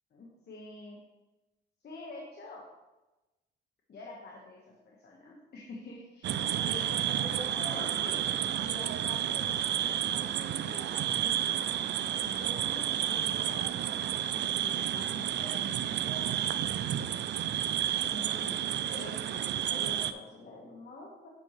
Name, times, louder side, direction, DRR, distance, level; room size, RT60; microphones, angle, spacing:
voice 1, 0.1-1.0 1.8-2.6 3.9-8.3 8.6-11.8 12.2-16.9 18.0-18.6 18.9-21.3, left 2 dB, 55° left, -2 dB, 1.5 m, -47 dB
sound 1, 6.2-20.1, right 10 dB, 60° right, 0.4 m, -31 dB
8.7 x 6.3 x 3.2 m, 1.1 s
cardioid pair, 90°, 20 cm